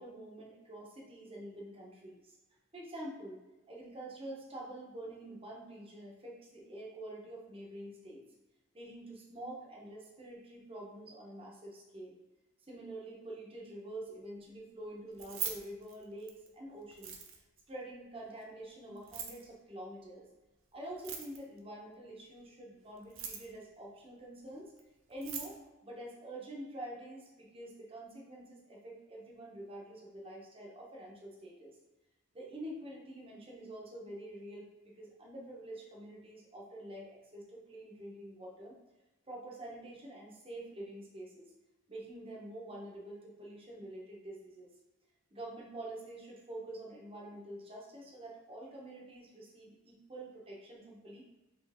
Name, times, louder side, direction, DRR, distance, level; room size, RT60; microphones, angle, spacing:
voice 1, 0.0-2.4 2.7-3.4 3.7-8.2 8.7-12.2 12.6-17.1 17.7-20.3 20.7-24.7 25.1-31.8 32.3-38.8 39.3-41.5 41.9-44.7 45.3-51.2, right 1 dB, 30° right, -3 dB, 1.0 m, -47 dB
Keys jangling, 15.1-16.5 16.9-17.6 19.0-19.4 20.9-21.6 23.0-23.6 24.8-24.9 25.1-25.6, right 7 dB, 80° right, 0.7 m, -41 dB
4.3 x 3.3 x 3.5 m, 1.1 s
head